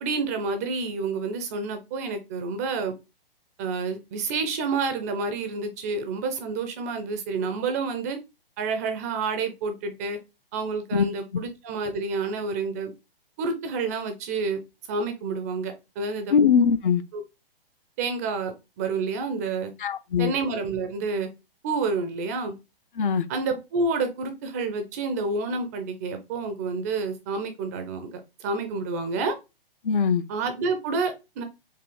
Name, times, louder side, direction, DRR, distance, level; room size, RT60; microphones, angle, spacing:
voice 1, 0.0-2.9 3.6-8.2 8.6-10.2 10.5-12.9 13.4-14.6 14.9-16.3 17.1-17.2 18.0-19.7 20.2-21.3 21.6-22.5 23.3-29.4 30.3-31.4, right 4 dB, 15° right, 0.3 m, -29 dB
voice 2, 16.3-17.0 19.8-20.3 23.0-23.2 29.8-30.2, left 6 dB, 60° left, 0.6 m, -21 dB
4.6 x 2.7 x 3.7 m
figure-of-eight pair, 125°, 30 cm